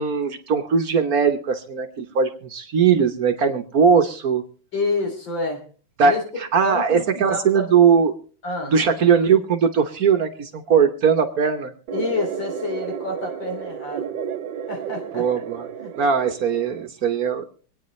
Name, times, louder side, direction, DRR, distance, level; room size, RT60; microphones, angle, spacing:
voice 1, 0.0-4.4 6.0-6.2 6.5-8.2 8.7-11.7 15.1-15.6 16.0-17.5, right 6 dB, 55° right, 6 dB, 1.4 m, -19 dB
voice 2, 4.7-5.6 6.0-6.2 6.6-7.7 8.4-8.8 11.9-14.2 14.7-15.3 15.8-15.9, left 3 dB, 75° left, 3 dB, 3.7 m, -28 dB
sound 1, 11.9-16.9, right 8 dB, 75° right, 1.5 m, -32 dB
25.5 x 9.4 x 3.2 m, 0.41 s
omnidirectional pair, 2.1 m